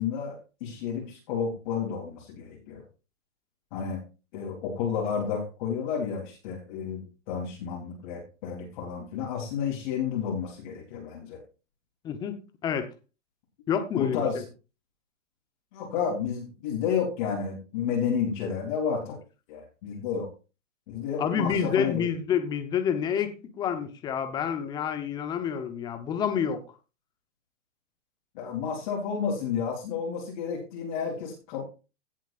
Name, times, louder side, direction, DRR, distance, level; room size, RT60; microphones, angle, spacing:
voice 1, 0.0-2.8 3.7-4.0 4.3-11.4 13.9-14.4 15.7-19.2 19.5-20.3 20.9-22.0 28.3-31.6, left 7 dB, 35° left, 3.3 m, -31 dB
voice 2, 12.0-12.9 13.7-14.4 21.2-26.6, left 7 dB, 10° left, 0.8 m, -28 dB
16.5 x 7.4 x 2.5 m
hypercardioid pair, 145°, 39 cm